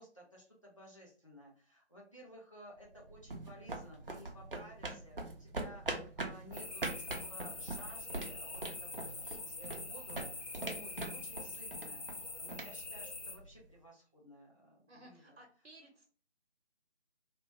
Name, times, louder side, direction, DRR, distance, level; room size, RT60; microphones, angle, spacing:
voice 1, 0.0-12.1 12.4-15.4, equal, 30° left, -4 dB, 0.7 m, -56 dB
sound 1, 2.8-13.6, right 2 dB, 50° right, 0.5 m, -43 dB
sound 2, 6.5-13.4, left 3 dB, 80° left, 0.8 m, -45 dB
voice 2, 14.9-16.1, right 1 dB, 80° right, 0 dB, 0.9 m, -57 dB
2.9 x 2.1 x 2.8 m, 0.44 s
figure-of-eight pair, 165°, 34 cm